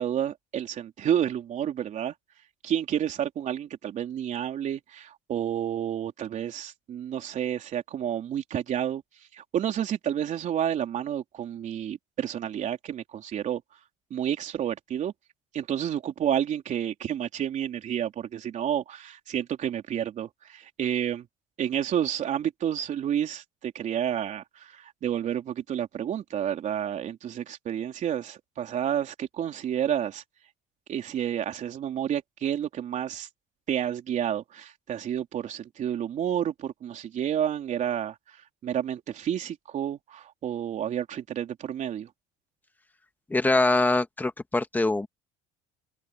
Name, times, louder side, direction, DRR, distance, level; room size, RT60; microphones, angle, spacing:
voice 1, 0.0-2.1 2.6-9.0 9.3-13.6 14.1-15.1 15.5-21.3 21.6-30.2 30.9-33.3 33.7-42.1, right 10 dB, 45° right, 3.6 m, -30 dB
voice 2, 43.3-45.1, left 2 dB, 10° left, 1.5 m, -23 dB
open air
cardioid pair, 140°, 18 cm